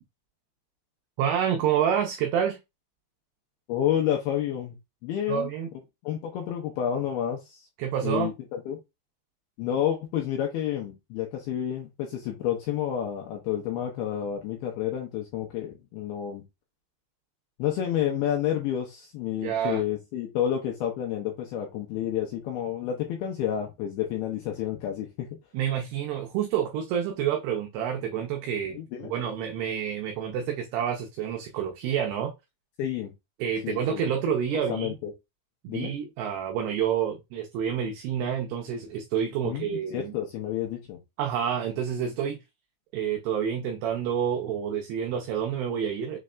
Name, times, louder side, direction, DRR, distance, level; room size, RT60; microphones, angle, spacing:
voice 1, 1.2-2.6 5.3-5.7 7.8-8.3 19.4-19.8 25.5-32.3 33.4-35.0 35.6-40.1 41.2-42.4 42.9-46.2, right 8 dB, 80° right, 2.5 m, -28 dB
voice 2, 3.7-4.8 5.0-5.5 6.0-7.7 8.0-8.8 9.6-16.4 17.6-25.3 28.7-29.1 32.8-33.1 33.6-34.1 34.7-35.1 35.7-35.9 39.4-41.0, left 10 dB, 80° left, 2.2 m, -30 dB
6.5 x 3.2 x 2.4 m
omnidirectional pair, 5.2 m